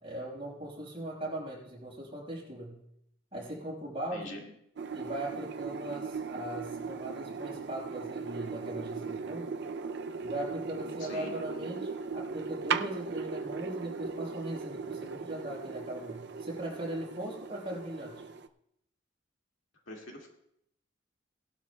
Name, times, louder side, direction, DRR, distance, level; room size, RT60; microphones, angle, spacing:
voice 1, 0.0-2.8 3.3-4.3 4.9-9.5 10.2-18.2, right 1 dB, 30° right, -4 dB, 5.4 m, -39 dB
voice 2, 4.1-4.5 11.0-11.3 19.9-20.3, left 1 dB, 75° left, 0 dB, 2.2 m, -43 dB
sound 1, 4.8-18.5, right 5 dB, 60° right, 0.5 m, -38 dB
19.0 x 12.0 x 2.3 m, 0.77 s
head